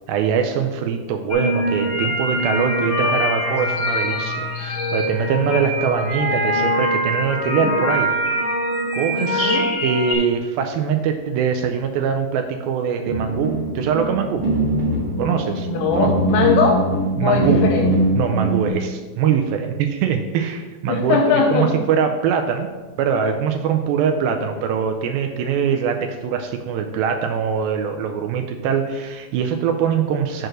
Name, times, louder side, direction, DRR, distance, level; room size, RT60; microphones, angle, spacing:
voice 1, 0.1-8.1 8.9-14.4 15.2-15.7 16.0-16.1 17.2-17.6 18.2-21.2 21.5-22.7 23.0-30.5, right 7 dB, 85° right, 5 dB, 2.3 m, -22 dB
sound 1, 1.3-10.1, equal, 45° left, 0.7 m, -23 dB
voice 2, 9.2-9.7 15.7-16.9 17.2-17.9 20.9-21.7, left 5 dB, 75° left, 2 dB, 2.2 m, -20 dB
sound 2, 13.1-18.7, right 1 dB, 45° right, 1.2 m, -22 dB
6.4 x 4.6 x 6.3 m, 1.3 s
omnidirectional pair, 4.3 m